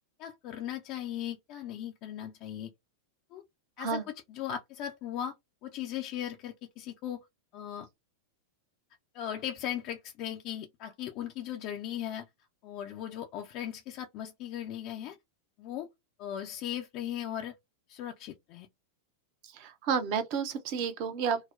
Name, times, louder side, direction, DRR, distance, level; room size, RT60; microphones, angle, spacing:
voice 1, 0.0-2.7 3.3-3.4 3.8-4.0 4.3-5.4 5.6-7.2 7.5-7.9 9.1-12.3 12.6-15.2 15.6-15.9 16.2-17.6 17.9-18.7, left 10 dB, 40° left, 0.5 m, -38 dB
voice 2, 19.4-21.4, right 6 dB, 45° right, 0.7 m, -31 dB
3.8 x 2.0 x 2.6 m
figure-of-eight pair, 90°, 0 cm